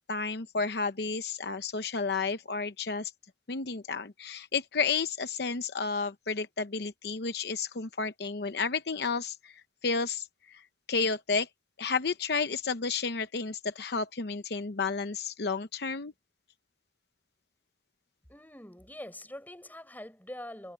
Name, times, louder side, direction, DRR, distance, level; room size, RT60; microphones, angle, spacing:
voice 1, 0.1-3.1 3.5-9.5 9.8-10.6 10.9-11.5 11.8-16.1, left 4 dB, 65° left, 0.8 m, -31 dB
voice 2, 18.3-20.7, left 1 dB, 10° left, 7.5 m, -44 dB
head